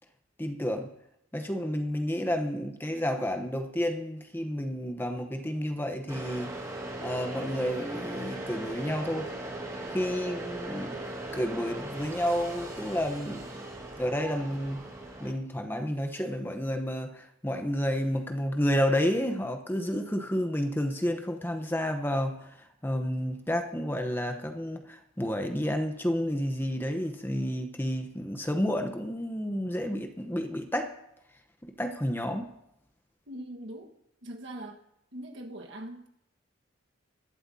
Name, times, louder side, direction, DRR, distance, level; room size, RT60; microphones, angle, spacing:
voice 1, 0.4-0.9 1.3-6.5 7.0-9.3 9.9-11.0 11.3-13.6 14.0-14.8 15.2-22.6 22.8-30.9 31.6-32.5, equal, 10° left, 0.9 m, -30 dB
sound 1, 6.1-15.3, right 1 dB, 15° right, 2.0 m, -39 dB
voice 2, 33.3-33.9 34.2-34.8 35.1-36.1, right 1 dB, 60° right, 1.5 m, -41 dB
20.5 x 12.0 x 2.8 m
head